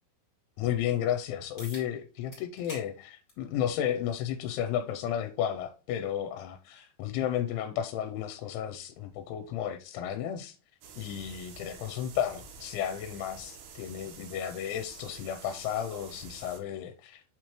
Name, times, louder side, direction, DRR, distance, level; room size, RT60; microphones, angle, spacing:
voice 1, 0.6-10.6 11.0-17.2, left 10 dB, 90° left, 3.0 m, -33 dB
sound 1, 1.6-1.9 2.3-2.9 3.3-3.4 4.5-4.6 9.5-9.6, left 1 dB, 30° left, 0.9 m, -45 dB
sound 2, 10.8-16.6, right 6 dB, 70° right, 2.8 m, -49 dB
8.6 x 4.4 x 3.1 m
omnidirectional pair, 5.4 m